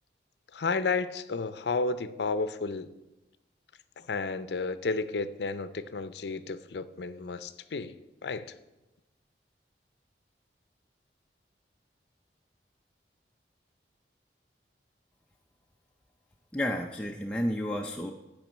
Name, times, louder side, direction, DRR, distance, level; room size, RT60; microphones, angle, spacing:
voice 1, 0.5-2.9 4.0-8.5, left 4 dB, 75° left, 14 dB, 0.5 m, -32 dB
voice 2, 16.5-18.1, equal, 5° left, 0 dB, 0.4 m, -31 dB
9.1 x 5.2 x 7.2 m, 1.0 s
head